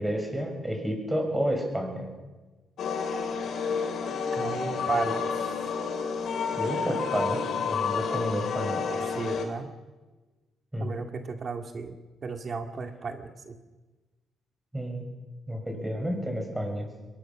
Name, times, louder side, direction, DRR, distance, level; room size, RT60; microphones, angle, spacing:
voice 1, 0.0-2.1 6.5-8.9 10.7-11.0 14.7-15.0 15.5-16.9, equal, 10° right, 3 dB, 6.4 m, -30 dB
sound 1, 2.8-9.4, left 6 dB, 65° left, 3.1 m, -30 dB
voice 2, 4.3-5.3 9.0-9.7 10.8-11.9 12.2-13.6, right 4 dB, 45° right, 5 dB, 2.2 m, -34 dB
22.0 x 20.5 x 6.3 m, 1.2 s
cardioid pair, 90°, 0 cm